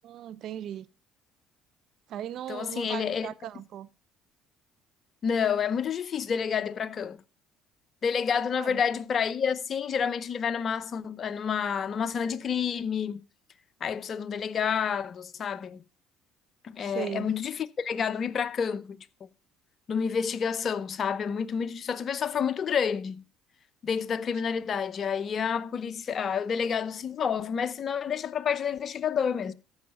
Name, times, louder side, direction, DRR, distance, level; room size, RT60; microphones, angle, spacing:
voice 1, 0.0-0.9 2.1-3.9 8.6-8.8 16.8-17.3, right 11 dB, 60° right, 0.6 m, -37 dB
voice 2, 2.5-3.3 5.2-7.2 8.0-13.2 13.8-15.8 16.6-19.0 19.9-23.2 23.8-29.5, left 7 dB, 45° left, 0.7 m, -29 dB
14.0 x 5.6 x 5.2 m
supercardioid pair, 75°, 0 cm